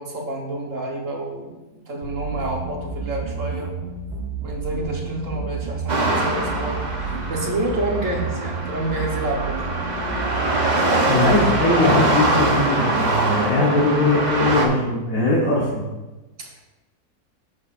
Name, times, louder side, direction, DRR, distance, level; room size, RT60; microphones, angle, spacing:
voice 1, 0.0-1.6 1.9-3.7 4.4-9.7 16.4-16.6, right 1 dB, 55° right, 0 dB, 1.6 m, -28 dB
sound 1, 2.0-11.6, right 5 dB, 85° right, 1.6 m, -31 dB
sound 2, 5.9-14.7, right 2 dB, 30° right, 1.0 m, -23 dB
voice 2, 11.1-15.9, left 2 dB, 60° left, -5 dB, 1.7 m, -20 dB
11.0 x 7.1 x 2.5 m, 1.1 s
omnidirectional pair, 1.7 m